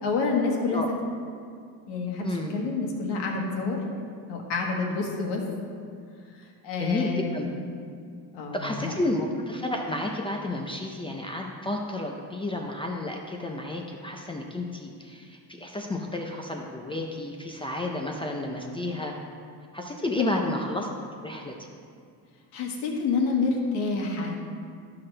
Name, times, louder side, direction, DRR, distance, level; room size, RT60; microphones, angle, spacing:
voice 1, 0.0-0.8 1.9-3.8 4.3-5.4 6.6-7.5 8.3-8.9 20.2-20.4 22.5-24.4, left 4 dB, 80° left, 0 dB, 1.6 m, -28 dB
voice 2, 2.2-2.6 6.8-7.5 8.5-19.1 19.7-20.9 21.2-21.6, left 2 dB, 15° left, 1 dB, 0.4 m, -31 dB
12.5 x 5.8 x 3.3 m, 2.3 s
cardioid pair, 155°, 41 cm